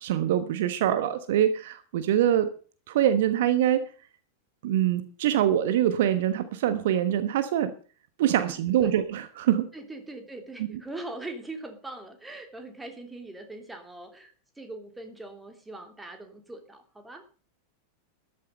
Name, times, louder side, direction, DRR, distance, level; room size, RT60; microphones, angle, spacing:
voice 1, 0.0-2.5 2.9-3.9 4.6-7.7 8.2-9.7, right 11 dB, 55° right, 11 dB, 1.2 m, -24 dB
voice 2, 8.5-8.9 9.7-17.4, right 2 dB, 10° right, 6 dB, 2.9 m, -42 dB
13.5 x 11.5 x 5.4 m, 0.39 s
figure-of-eight pair, 90°, 0 cm